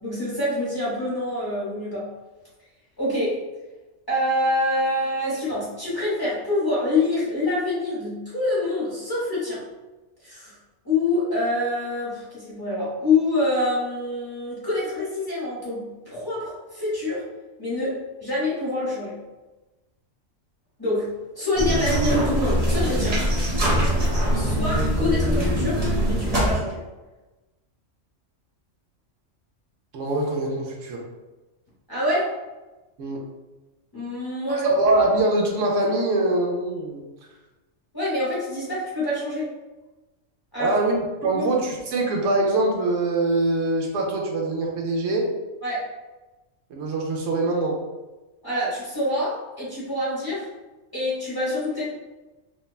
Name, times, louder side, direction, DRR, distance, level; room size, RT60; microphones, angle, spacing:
voice 1, 0.0-2.1 3.0-3.4 4.1-9.6 10.2-10.6 10.8-17.2 17.6-19.2 20.8-23.2 24.4-26.8 31.9-32.3 33.9-34.7 37.9-39.5 40.5-40.8 41.3-41.4 45.6-45.8 48.4-50.5 50.9-52.0, left 1 dB, 20° left, -9 dB, 0.7 m, -26 dB
sound 1, 21.5-26.6, equal, 35° right, 0.7 m, -22 dB
voice 2, 29.9-31.0 33.0-33.2 34.6-37.0 40.6-41.0 41.2-45.3 46.7-47.8, right 2 dB, 75° right, -1 dB, 0.9 m, -23 dB
3.1 x 2.1 x 2.3 m, 1.1 s
omnidirectional pair, 1.3 m